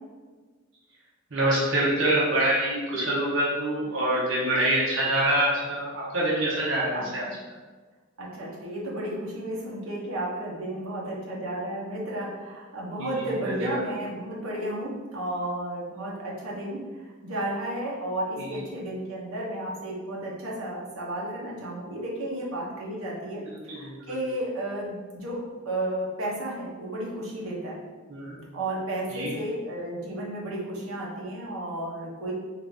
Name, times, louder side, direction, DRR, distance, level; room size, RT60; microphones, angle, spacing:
voice 1, 1.3-7.3 13.0-13.8 18.4-18.6 23.4-24.3 28.1-28.4 29.1-29.3, right 1 dB, 60° right, -6 dB, 0.8 m, -26 dB
voice 2, 8.2-27.8 28.5-32.3, right 1 dB, 85° right, -4 dB, 0.9 m, -33 dB
3.8 x 2.6 x 3.4 m, 1.3 s
head